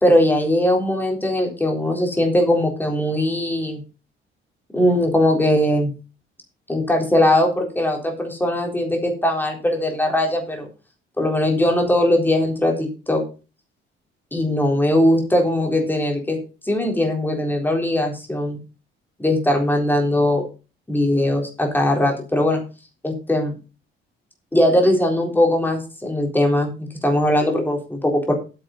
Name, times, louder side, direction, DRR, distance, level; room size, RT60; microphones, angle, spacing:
voice 1, 0.0-3.8 4.7-5.9 6.7-10.7 11.2-13.2 14.3-16.4 16.6-18.6 19.2-20.4 20.9-22.6 23.0-23.5 24.5-28.3, left 1 dB, 10° left, 1 dB, 3.9 m, -20 dB
9.1 x 7.5 x 5.7 m, 0.33 s
cardioid pair, 120°, 21 cm